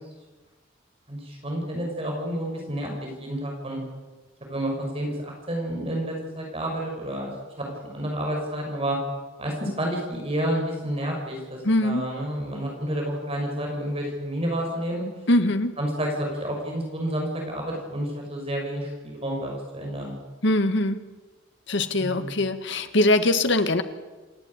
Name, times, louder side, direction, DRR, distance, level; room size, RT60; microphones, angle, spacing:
voice 1, 1.1-3.8 4.5-9.0 9.4-15.1 15.8-20.1 22.0-22.3, right 1 dB, 30° right, 0 dB, 5.5 m, -30 dB
voice 2, 11.6-12.1 15.3-15.7 20.4-21.0 21.7-23.8, left 1 dB, 65° left, 9 dB, 1.7 m, -22 dB
27.5 x 11.5 x 9.8 m, 1.3 s
head